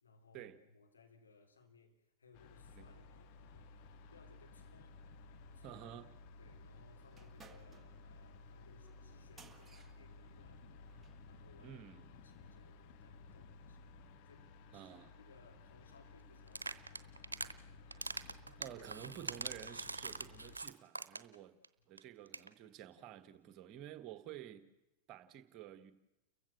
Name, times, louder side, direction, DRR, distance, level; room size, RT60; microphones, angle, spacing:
voice 1, 0.0-3.8 4.1-5.0 5.5-5.8 6.4-11.8 12.2-13.9 14.2-17.2, left 3 dB, 75° left, 3.4 m, -65 dB
sound 1, 2.3-20.6, left 3 dB, 45° left, 1.4 m, -57 dB
voice 2, 5.6-6.1 11.6-12.1 14.7-15.2 18.5-21.5 21.9-24.6 25.1-25.9, right 11 dB, 35° right, 1.6 m, -51 dB
sound 2, 7.1-11.3, right 4 dB, 10° right, 1.7 m, -63 dB
sound 3, 16.5-17.5 17.9-21.4 21.6-21.7 22.0-22.1 22.3-22.5, right 3 dB, 80° right, 1.0 m, -43 dB
30.0 x 15.5 x 7.6 m
figure-of-eight pair, 90°, 0 cm